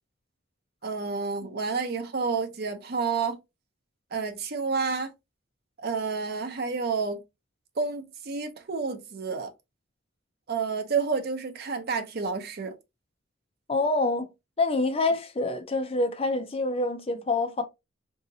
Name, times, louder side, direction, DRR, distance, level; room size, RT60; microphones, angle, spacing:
voice 1, 0.8-3.4 4.1-5.1 5.8-7.2 7.8-9.5 10.5-12.7, right 5 dB, 55° right, 0.7 m, -29 dB
voice 2, 13.7-14.3 14.6-17.6, left 2 dB, 30° left, 0.6 m, -26 dB
3.8 x 2.8 x 2.7 m
head